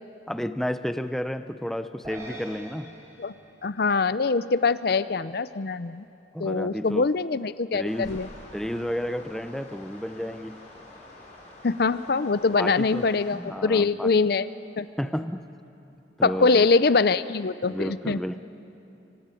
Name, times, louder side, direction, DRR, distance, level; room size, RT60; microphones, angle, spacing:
voice 1, 0.3-2.9 6.3-7.1 7.7-8.2 8.5-10.6 12.6-14.1 15.0-15.4 16.2-16.7 17.6-18.4, equal, ahead, 9 dB, 0.6 m, -32 dB
sound 1, 2.0-4.5, right 1 dB, 15° right, 4.6 m, -45 dB
voice 2, 3.6-6.0 6.4-8.3 11.6-14.5 14.8-14.9 16.2-18.2, left 4 dB, 55° left, 14 dB, 0.6 m, -23 dB
sound 2, 7.9-13.4, left 1 dB, 40° left, 5.9 m, -47 dB
25.5 x 25.0 x 9.1 m, 2.8 s
head